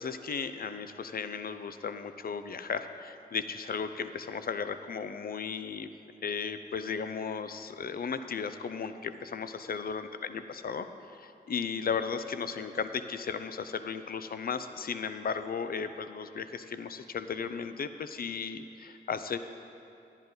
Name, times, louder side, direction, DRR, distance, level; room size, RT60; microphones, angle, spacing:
voice 1, 0.0-5.9 6.2-19.4, left 6 dB, 55° left, 10 dB, 0.5 m, -35 dB
10.5 x 10.5 x 3.9 m, 2.7 s
cardioid pair, 55°, 19 cm